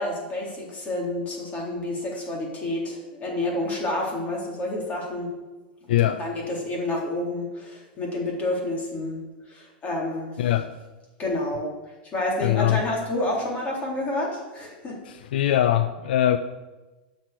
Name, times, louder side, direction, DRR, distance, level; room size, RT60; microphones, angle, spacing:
voice 1, 0.0-5.3 6.1-9.2 9.5-10.3 11.2-11.7 12.1-15.0, left 1 dB, 30° left, -2 dB, 3.7 m, -29 dB
voice 2, 5.9-6.2 10.4-10.7 12.4-12.8 15.1-16.4, left 12 dB, 75° left, 10 dB, 0.6 m, -22 dB
9.4 x 6.5 x 8.3 m, 1.2 s
hypercardioid pair, 125°, 5 cm